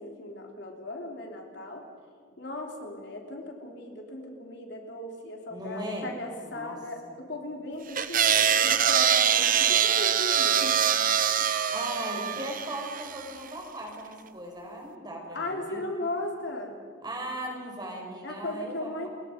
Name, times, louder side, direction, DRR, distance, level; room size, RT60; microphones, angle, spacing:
voice 1, 0.0-1.8 2.4-10.8 11.4-11.5 15.3-16.8 18.2-19.1, left 2 dB, 55° left, 2 dB, 3.5 m, -37 dB
voice 2, 5.5-6.1 6.5-6.8 11.7-15.8 17.0-19.1, right 1 dB, 20° right, 1 dB, 4.8 m, -38 dB
sound 1, 8.0-13.3, right 8 dB, 40° right, 0.9 m, -24 dB
29.5 x 22.5 x 5.3 m, 2.1 s
head